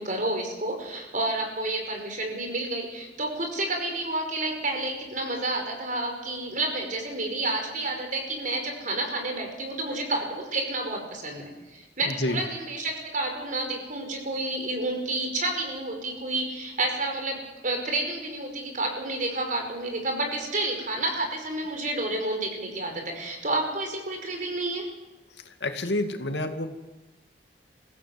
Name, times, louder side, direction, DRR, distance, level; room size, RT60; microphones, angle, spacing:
voice 1, 0.0-24.9, right 2 dB, 50° right, 3 dB, 5.3 m, -30 dB
voice 2, 25.6-26.7, left 1 dB, 80° left, 6 dB, 2.3 m, -28 dB
27.0 x 16.0 x 8.0 m, 1.1 s
head